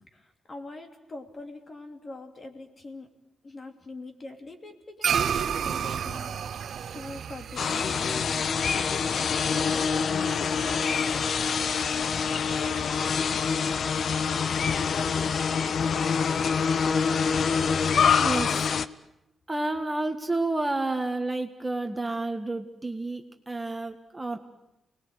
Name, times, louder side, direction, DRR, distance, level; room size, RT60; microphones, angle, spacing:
voice 1, 0.0-3.1 3.4-6.4 6.9-8.4, left 2 dB, 35° left, 5 dB, 3.1 m, -43 dB
sound 1, 5.0-9.6, right 8 dB, 70° right, 0.8 m, -31 dB
sound 2, 7.6-18.8, left 6 dB, 60° left, 0.8 m, -25 dB
voice 2, 18.2-18.5 19.5-24.4, right 2 dB, 15° right, 5 dB, 1.6 m, -30 dB
28.5 x 20.0 x 8.1 m, 0.91 s
cardioid pair, 105°, 0 cm